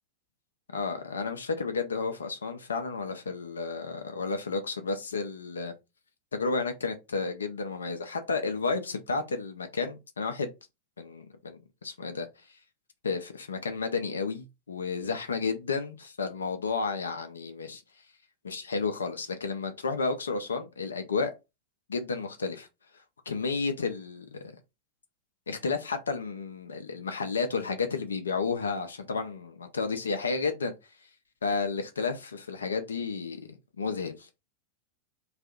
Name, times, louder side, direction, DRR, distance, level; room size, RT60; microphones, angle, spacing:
voice 1, 0.7-5.7 6.3-10.5 11.0-12.3 13.0-17.8 18.4-21.3 21.9-22.7 23.3-24.4 25.5-30.7 31.4-32.1 32.5-34.3, left 4 dB, 70° left, 0.5 m, -32 dB
2.6 x 2.4 x 3.5 m
figure-of-eight pair, 90°, 0 cm